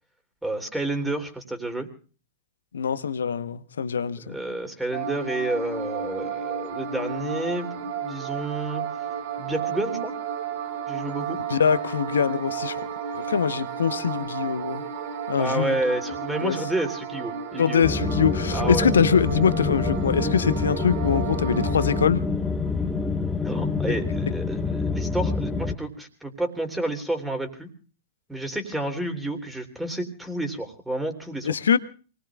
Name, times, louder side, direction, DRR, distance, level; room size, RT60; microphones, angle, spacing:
voice 1, 0.4-1.9 4.2-8.8 9.4-10.1 10.9-11.4 15.4-17.9 18.5-19.0 23.4-27.7 28.3-31.5, right 1 dB, 5° right, 3.2 m, -30 dB
voice 2, 2.7-4.4 11.5-12.8 13.1-14.8 15.3-15.8 16.4-16.6 17.6-22.2 31.4-31.8, left 7 dB, 75° left, 1.0 m, -23 dB
sound 1, 4.9-22.1, right 7 dB, 60° right, 2.2 m, -32 dB
sound 2, 17.8-25.8, left 4 dB, 10° left, 1.5 m, -27 dB
28.5 x 20.0 x 2.4 m
figure-of-eight pair, 100°, 0 cm